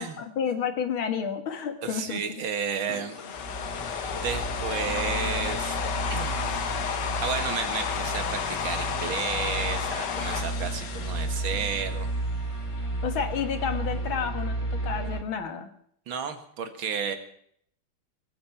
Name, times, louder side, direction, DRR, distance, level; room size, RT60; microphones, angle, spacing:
voice 1, 0.0-2.4 13.0-15.7, left 7 dB, 85° left, 7 dB, 2.6 m, -30 dB
voice 2, 1.8-3.1 4.1-5.8 6.1-6.5 7.2-12.1 16.1-17.2, right 6 dB, 80° right, 8 dB, 2.4 m, -32 dB
sound 1, 2.9-12.1, left 7 dB, 60° left, 1.8 m, -32 dB
sound 2, 3.2-15.2, right 2 dB, 15° left, 1.9 m, -33 dB
20.0 x 8.7 x 7.2 m, 0.65 s
omnidirectional pair, 2.2 m